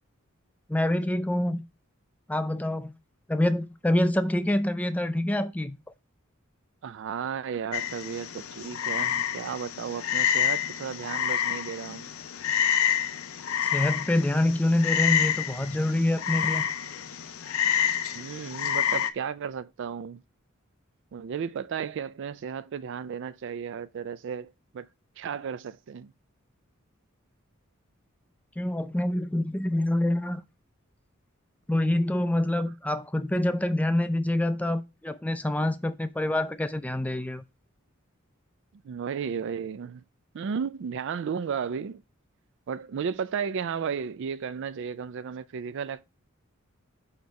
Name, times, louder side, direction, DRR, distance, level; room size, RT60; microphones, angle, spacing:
voice 1, 0.7-1.6 2.3-3.0 3.3-5.8 13.6-16.7 28.6-30.4 31.7-37.4, left 1 dB, 5° left, 0.4 m, -26 dB
voice 2, 6.8-12.1 18.1-20.2 21.1-24.9 25.2-26.1 38.8-40.0 40.3-42.0 42.7-46.0, right 7 dB, 60° right, 0.4 m, -34 dB
Frog, 7.7-19.1, left 9 dB, 85° left, 0.6 m, -28 dB
5.2 x 4.4 x 4.7 m
head